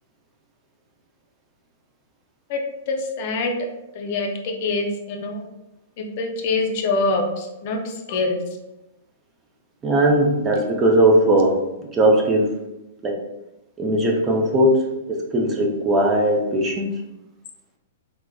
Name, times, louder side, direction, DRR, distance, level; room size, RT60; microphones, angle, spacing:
voice 1, 2.9-3.5 3.9-5.5 6.0-8.4, left 3 dB, 50° left, 3 dB, 0.5 m, -25 dB
voice 2, 9.8-11.6 11.9-12.5 13.0-13.1 13.8-16.9, right 1 dB, 20° right, -1 dB, 0.5 m, -18 dB
3.4 x 2.1 x 2.2 m, 0.95 s
hypercardioid pair, 130°, 0 cm